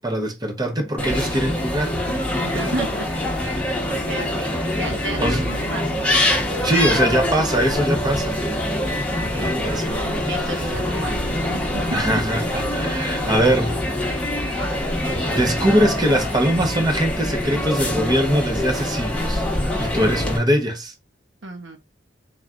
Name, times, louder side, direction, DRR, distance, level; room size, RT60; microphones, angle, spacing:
voice 1, 0.0-1.9 5.2-5.5 6.6-8.4 9.4-10.3 11.9-13.8 14.6-14.9 15.3-19.4 19.8-20.9, right 1 dB, 20° right, 1.0 m, -22 dB
sound 1, 1.0-20.4, left 1 dB, 5° left, 1.2 m, -24 dB
voice 2, 2.4-3.1 3.4-6.0 9.3-9.6 10.2-12.0 21.4-21.8, right 2 dB, 70° right, 1.3 m, -33 dB
3.7 x 3.1 x 3.7 m
head